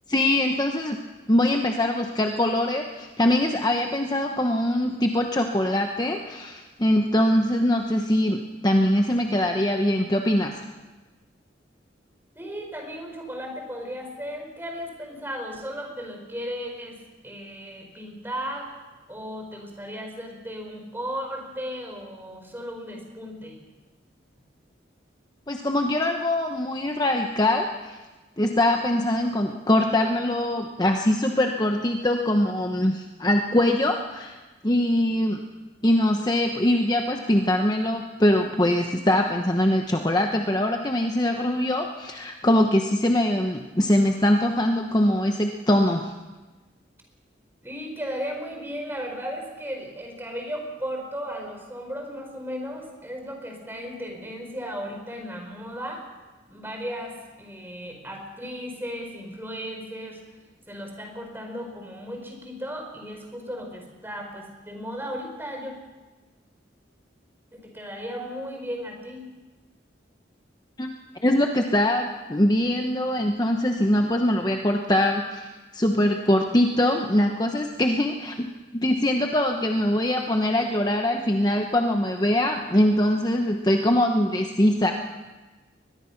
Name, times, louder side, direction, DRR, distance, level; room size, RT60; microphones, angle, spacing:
voice 1, 0.1-1.0 1.3-10.6 25.5-28.0 28.4-34.4 34.6-35.4 35.8-46.1 70.8-70.9 71.2-84.9, left 1 dB, 20° left, 3 dB, 1.0 m, -22 dB
voice 2, 12.3-18.7 19.1-23.6 47.6-56.0 56.5-60.2 60.7-65.7 67.5-69.2, equal, 10° right, 2 dB, 4.4 m, -35 dB
22.5 x 21.0 x 5.9 m, 1.2 s
head